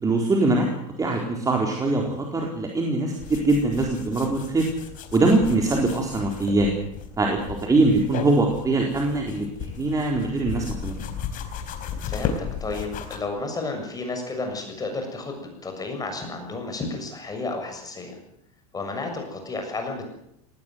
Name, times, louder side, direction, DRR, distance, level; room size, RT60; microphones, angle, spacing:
voice 1, 0.0-0.7 1.0-4.7 5.1-6.7 7.2-11.0, right 2 dB, 20° right, 0 dB, 4.2 m, -22 dB
sound 1, 3.2-13.2, left 7 dB, 45° left, 4.3 m, -35 dB
voice 2, 12.0-18.2 18.7-20.0, left 3 dB, 20° left, 4 dB, 6.9 m, -32 dB
19.0 x 18.0 x 9.4 m, 0.77 s
supercardioid pair, 110°, 19 cm